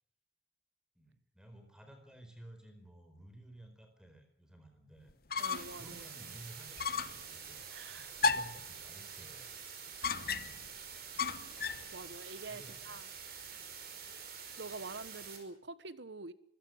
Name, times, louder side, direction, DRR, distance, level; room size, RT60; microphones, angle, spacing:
voice 1, 0.9-5.1 5.6-7.1 7.3-7.7 7.9-9.5 10.4-10.7 12.5-13.0 13.5-13.7, right 1 dB, 5° right, 4.5 m, -55 dB
sound 1, 5.1-5.8 6.2-6.3 6.8-7.2 8.2-8.7 10.0-10.7 11.2-11.9, left 5 dB, 50° left, 1.0 m, -34 dB
sound 2, 5.4-15.4, right 7 dB, 55° right, 5.6 m, -47 dB
voice 2, 5.4-6.0 7.7-8.1 11.6-13.1 14.6-16.3, right 3 dB, 75° right, 1.2 m, -46 dB
24.5 x 16.0 x 8.0 m
head